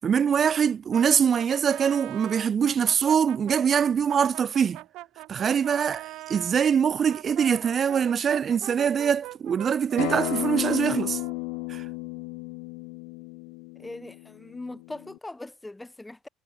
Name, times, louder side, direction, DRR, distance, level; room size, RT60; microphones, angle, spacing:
voice 1, 0.0-4.8 5.3-11.2 11.7-11.8, right 7 dB, 40° right, 0.7 m, -23 dB
Brass instrument, 0.9-6.6 7.1-11.9, right 18 dB, 75° right, 6.7 m, -42 dB
Acoustic guitar, 10.0-15.2, left 38 dB, 85° left, 0.7 m, -33 dB
voice 2, 13.8-16.3, left 2 dB, 10° left, 8.0 m, -40 dB
supercardioid pair, 90°, 0 cm